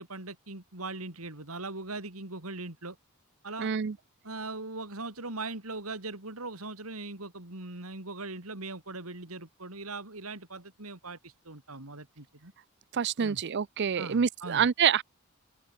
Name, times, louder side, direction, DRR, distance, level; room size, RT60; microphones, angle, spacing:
voice 1, 0.0-3.0 3.4-3.7 4.2-12.5 13.2-13.4 14.0-14.6, right 3 dB, 85° right, 4.3 m, -40 dB
voice 2, 3.6-4.0 12.9-15.0, right 7 dB, 55° right, 0.5 m, -27 dB
head